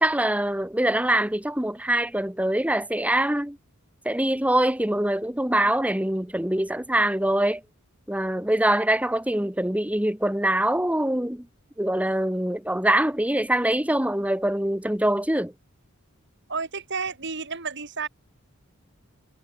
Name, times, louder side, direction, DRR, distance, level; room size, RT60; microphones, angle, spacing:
voice 1, 0.0-3.6 4.1-7.6 8.1-11.5 11.8-15.5, right 1 dB, 5° right, 1.9 m, -24 dB
voice 2, 16.5-18.1, right 5 dB, 55° right, 7.4 m, -31 dB
head